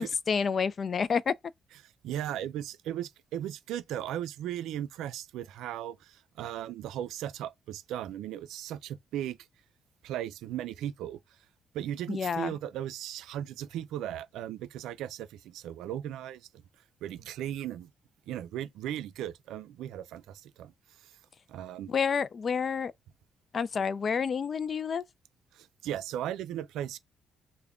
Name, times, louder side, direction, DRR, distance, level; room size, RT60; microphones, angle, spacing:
voice 1, 0.0-1.3 12.1-12.5 21.9-22.9 23.5-25.0, left 6 dB, 45° left, 0.3 m, -29 dB
voice 2, 1.8-9.4 10.0-11.2 11.7-16.6 17.0-17.9 18.3-20.7 21.0-21.2 21.5-21.9 25.5-27.0, right 11 dB, 85° right, 0.4 m, -37 dB
3.5 x 2.2 x 3.5 m
cardioid pair, 90°, 0 cm